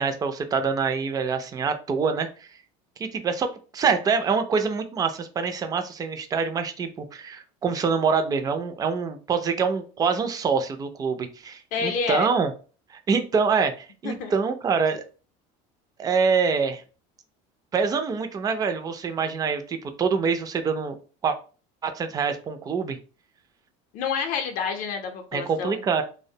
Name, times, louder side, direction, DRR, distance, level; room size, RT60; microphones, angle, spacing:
voice 1, 0.0-2.3 3.0-12.5 12.9-15.0 16.0-16.8 17.7-21.0 21.2-21.4 21.8-23.0 25.3-26.0, right 5 dB, 20° right, 8 dB, 0.3 m, -25 dB
voice 2, 11.7-12.3 14.0-14.3 23.9-25.8, left 6 dB, 55° left, 4 dB, 0.5 m, -28 dB
2.4 x 2.1 x 2.7 m, 0.36 s
cardioid pair, 125°, 17 cm